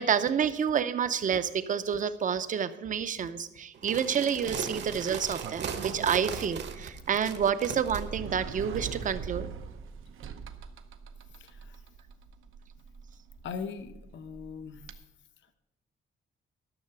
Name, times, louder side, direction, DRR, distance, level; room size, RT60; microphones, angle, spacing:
voice 1, 0.0-9.5, right 7 dB, 40° right, 13 dB, 0.6 m, -29 dB
sound 1, 3.7-8.0, right 7 dB, 60° right, 1.1 m, -37 dB
Sliding door, 4.4-15.0, right 6 dB, 85° right, 0.8 m, -43 dB
voice 2, 11.4-11.7 13.4-14.8, left 6 dB, 65° left, 9 dB, 0.8 m, -40 dB
12.5 x 6.6 x 6.7 m, 0.95 s
wide cardioid pair, 175°, 21 cm